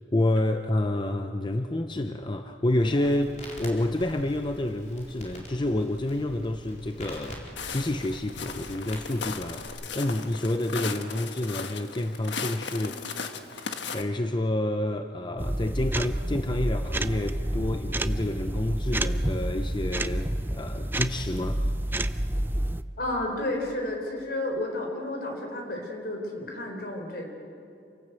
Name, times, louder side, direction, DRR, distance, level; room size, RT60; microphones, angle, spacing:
voice 1, 0.1-3.3 3.6-13.0 13.9-21.6, left 1 dB, 25° left, 7 dB, 0.7 m, -29 dB
Crackle, 2.8-9.7, left 1 dB, 40° left, 4.5 m, -45 dB
Walk footsteps, 7.6-14.0, left 5 dB, 90° left, 1.4 m, -36 dB
sound 1, 15.4-22.8, right 1 dB, 10° right, 0.5 m, -29 dB
voice 2, 23.0-27.3, left 1 dB, 60° left, 2 dB, 4.3 m, -32 dB
28.0 x 18.0 x 8.2 m, 2.7 s
head